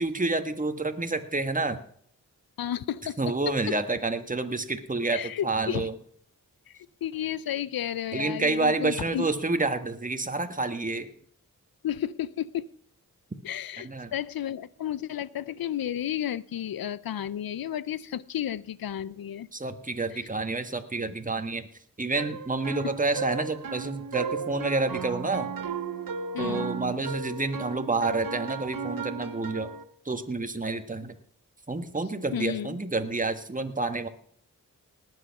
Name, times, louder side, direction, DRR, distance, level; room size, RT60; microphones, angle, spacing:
voice 1, 0.0-1.8 3.2-5.9 8.1-11.1 13.8-14.1 19.5-21.7 22.0-25.5 26.4-29.7 30.0-31.1 31.7-34.1, right 3 dB, 25° right, 7 dB, 1.6 m, -29 dB
voice 2, 2.6-3.7 5.1-5.9 6.7-9.3 11.8-12.7 13.4-19.5 20.1-20.3 26.3-26.7 32.3-32.8, left 10 dB, 85° left, 19 dB, 0.6 m, -32 dB
sound 1, 22.2-29.8, right 5 dB, 75° right, 1.1 m, -35 dB
19.0 x 8.0 x 5.9 m, 0.63 s
cardioid pair, 50°, 34 cm